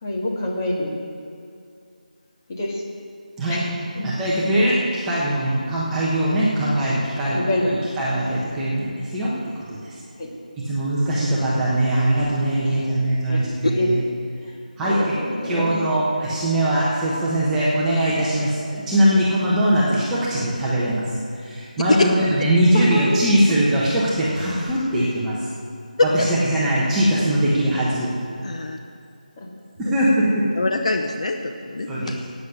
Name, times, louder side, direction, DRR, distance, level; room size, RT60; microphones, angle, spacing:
voice 1, 0.0-0.9 2.5-2.8 3.5-3.7 3.9-4.0 4.6-4.7 7.3-7.7 10.2-10.3 12.6-12.9 13.3-13.4 13.7-13.9 14.4-14.5 14.8-15.7 22.7-23.1 23.4-23.5 25.0-25.1, left 1 dB, 20° left, -2 dB, 1.8 m, -26 dB
voice 2, 4.0-9.9 10.6-14.0 14.8-15.1 15.4-21.0 21.4-25.3 26.0-28.1 29.8-30.5 31.9-32.2, right 1 dB, 5° right, -9 dB, 1.1 m, -21 dB
voice 3, 30.6-32.2, left 3 dB, 50° left, 5 dB, 0.8 m, -23 dB
10.5 x 8.6 x 8.1 m, 2.5 s
figure-of-eight pair, 175°, 5 cm